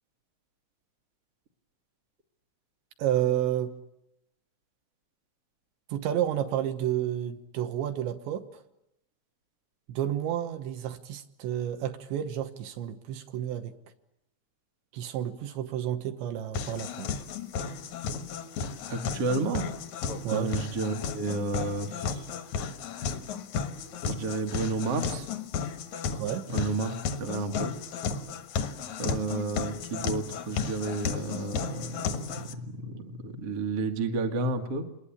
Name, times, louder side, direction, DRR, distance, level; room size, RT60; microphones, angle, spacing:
voice 1, 3.0-3.7 5.9-8.6 9.9-13.7 14.9-17.1 20.2-20.5 26.2-26.5, right 11 dB, 75° right, 7 dB, 3.1 m, -30 dB
sound 1, 16.5-32.5, left 6 dB, 85° left, 1.6 m, -34 dB
voice 2, 18.9-19.7 20.3-22.2 24.1-25.3 26.5-26.9 27.2-27.7 29.0-34.8, right 3 dB, 50° right, 5 dB, 1.7 m, -31 dB
28.0 x 21.0 x 8.7 m, 0.86 s
omnidirectional pair, 5.6 m